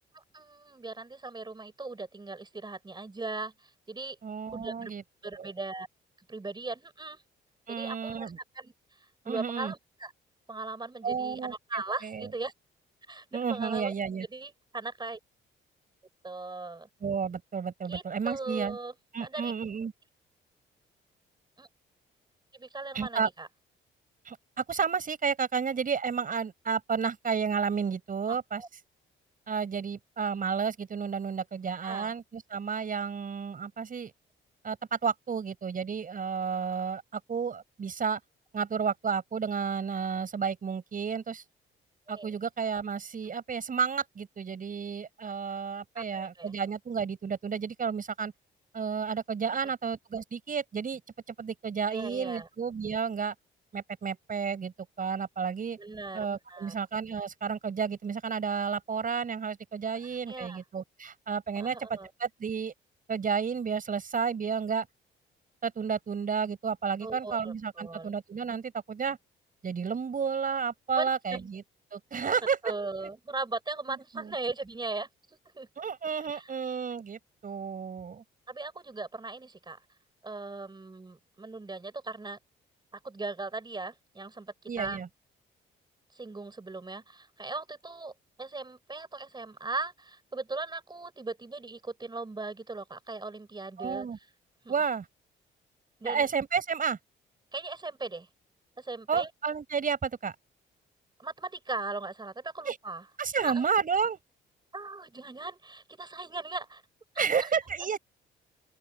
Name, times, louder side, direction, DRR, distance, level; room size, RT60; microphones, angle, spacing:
voice 1, 0.1-4.2 4.5-4.9 5.2-5.9 6.3-7.2 7.7-8.7 9.0-10.1 10.5-12.5 13.1-13.9 14.3-15.2 16.2-16.9 17.9-18.9 19.2-19.5 21.6-21.7 22.5-23.5 28.3-28.7 31.8-32.1 42.1-42.3 43.2-43.3 46.0-46.6 49.5-49.6 51.9-52.5 55.8-56.7 59.9-60.6 61.6-62.1 67.0-68.1 70.9-71.5 72.6-75.7 76.3-76.5 78.5-79.8 80.2-82.4 82.9-85.0 86.1-88.1 88.4-94.1 94.6-94.7 96.0-96.3 97.5-98.3 98.8-99.3 101.2-103.1 103.4-103.6 104.7-106.8 107.1-107.5 107.8-107.9, right 3 dB, 20° right, 5.3 m, -38 dB
voice 2, 4.2-5.0 5.4-5.5 7.7-8.4 9.3-9.7 11.0-12.3 13.3-14.3 17.0-18.8 19.1-19.9 22.9-23.3 24.3-28.6 29.5-34.1 34.6-38.2 38.5-41.4 42.1-48.3 48.7-51.0 51.3-53.3 53.7-55.8 56.1-62.7 63.1-64.9 65.6-69.2 69.6-71.6 71.9-72.6 73.9-74.3 75.8-78.2 84.7-85.1 93.8-94.2 94.7-95.1 96.0-97.0 99.1-100.4 102.7-102.8 103.2-104.2 107.2-108.0, right 6 dB, 45° right, 5.8 m, -31 dB
open air
cardioid pair, 90°, 20 cm